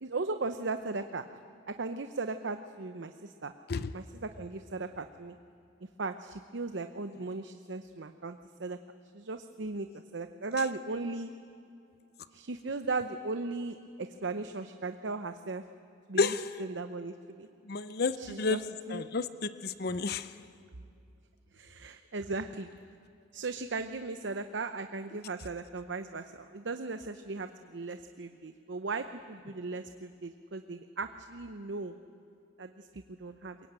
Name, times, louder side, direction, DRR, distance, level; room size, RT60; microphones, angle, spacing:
voice 1, 0.0-1.2 1.7-3.5 3.9-5.3 6.0-8.8 9.1-9.9 10.1-11.3 12.3-15.6 16.1-16.3 16.6-17.5 18.2-18.6 18.9-19.0 21.5-22.7 23.3-32.0 32.6-33.6, right 3 dB, 65° right, 9 dB, 0.8 m, -37 dB
voice 2, 16.2-16.5 17.7-18.6 18.9-20.3, left 3 dB, 55° left, 12 dB, 0.7 m, -31 dB
22.5 x 22.5 x 8.9 m, 2.5 s
head